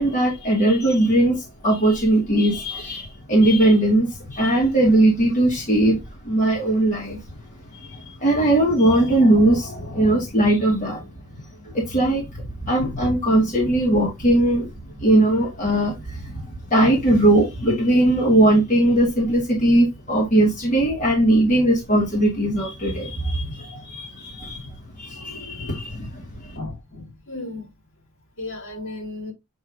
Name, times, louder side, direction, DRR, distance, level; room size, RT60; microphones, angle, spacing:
voice 1, 0.0-6.0 6.2-7.2 7.7-11.0 11.6-14.7 14.9-24.7 25.0-26.6, right 1 dB, 35° left, 2.1 m, -19 dB
voice 2, 26.5-27.7 28.4-29.3, left 2 dB, 60° left, 3.8 m, -34 dB
7.9 x 3.3 x 3.7 m
head